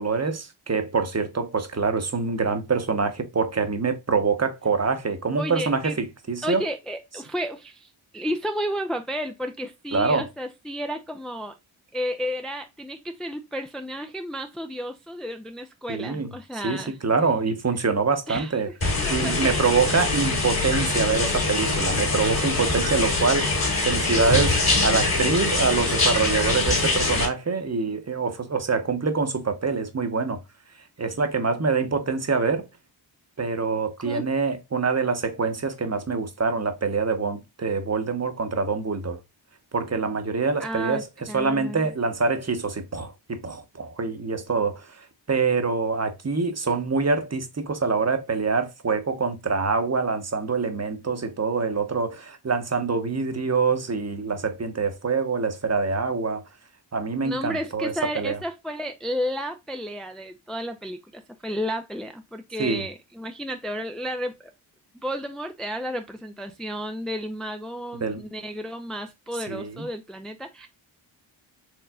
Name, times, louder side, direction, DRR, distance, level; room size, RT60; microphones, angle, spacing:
voice 1, 0.0-6.6 9.9-10.2 15.9-18.7 19.1-30.4 31.0-32.7 33.4-39.2 39.7-41.1 41.3-56.4 56.9-58.4 62.6-62.8 68.0-68.2 69.5-69.9, right 4 dB, 35° right, 1.0 m, -25 dB
voice 2, 5.4-6.0 6.4-11.5 11.9-17.0 18.3-19.6 20.2-20.4 21.0-21.4 22.2-22.4 34.0-34.3 40.6-41.8 57.2-64.4 65.0-70.7, equal, ahead, 0.5 m, -32 dB
sound 1, 18.8-27.3, left 3 dB, 50° left, 2.4 m, -23 dB
4.6 x 3.1 x 2.3 m
cardioid pair, 45°, 47 cm